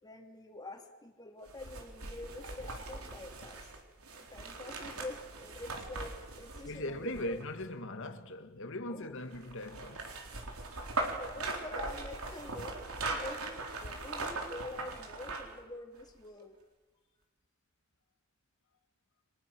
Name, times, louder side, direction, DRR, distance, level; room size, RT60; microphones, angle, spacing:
voice 1, 0.0-3.7 4.3-7.4 8.9-9.1 10.9-16.6, left 2 dB, 20° left, 3.1 m, -46 dB
sound 1, 1.5-7.6 9.3-15.6 16.0-16.1, right 2 dB, 80° right, 4.2 m, -40 dB
voice 2, 6.6-10.2, left 1 dB, 60° left, 2.2 m, -40 dB
30.0 x 26.0 x 6.4 m
head